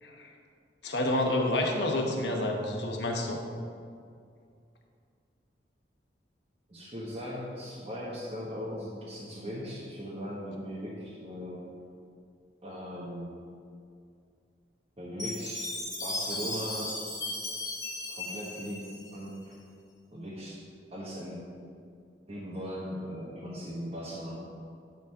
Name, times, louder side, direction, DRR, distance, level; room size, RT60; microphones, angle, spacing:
voice 1, 0.8-3.4, left 1 dB, 75° left, 1 dB, 1.2 m, -29 dB
voice 2, 6.7-11.7 12.6-13.3 15.0-15.7 16.0-16.9 18.1-18.8 19.1-19.5 20.1-20.6 20.9-21.4 22.3-24.4, equal, 35° right, -7 dB, 1.2 m, -38 dB
Chime, 15.2-19.5, left 2 dB, 20° left, 1.8 m, -36 dB
11.0 x 4.0 x 5.7 m, 2.3 s
head